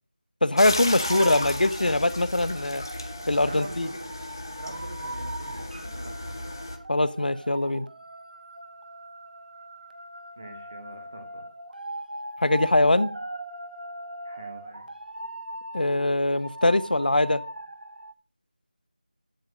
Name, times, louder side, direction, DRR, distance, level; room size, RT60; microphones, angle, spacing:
voice 1, 0.4-2.8 3.3-3.9 6.9-7.9 12.4-13.1 15.7-17.4, left 2 dB, 90° left, 0.7 m, -22 dB
sound 1, 0.6-6.8, left 1 dB, 30° left, 0.9 m, -34 dB
sound 2, 0.9-18.1, right 1 dB, 90° right, 1.0 m, -40 dB
voice 2, 3.4-4.1 4.6-6.5 10.4-11.4 14.2-14.9, right 1 dB, 20° right, 1.1 m, -43 dB
8.5 x 7.7 x 5.2 m
figure-of-eight pair, 180°, 5 cm